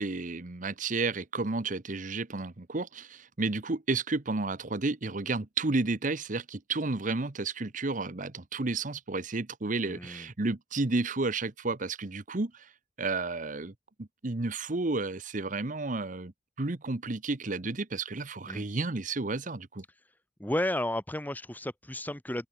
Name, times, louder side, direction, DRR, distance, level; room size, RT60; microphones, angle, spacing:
voice 1, 0.0-12.7 13.0-13.7 14.0-16.3 16.6-19.8, right 3 dB, 50° right, 1.1 m, -32 dB
voice 2, 9.9-10.3 18.5-18.6 20.4-22.5, left 1 dB, 10° left, 1.2 m, -33 dB
open air
head